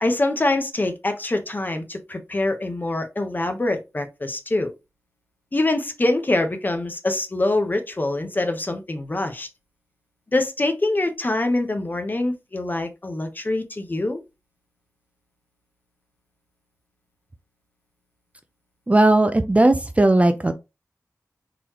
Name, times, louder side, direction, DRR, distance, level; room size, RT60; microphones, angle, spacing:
voice 1, 0.0-4.7 5.5-9.5 10.3-14.2, left 2 dB, 35° left, 0.7 m, -24 dB
voice 2, 18.9-20.5, right 2 dB, 25° right, 0.4 m, -17 dB
3.8 x 3.1 x 2.9 m
wide cardioid pair, 90°, 6 cm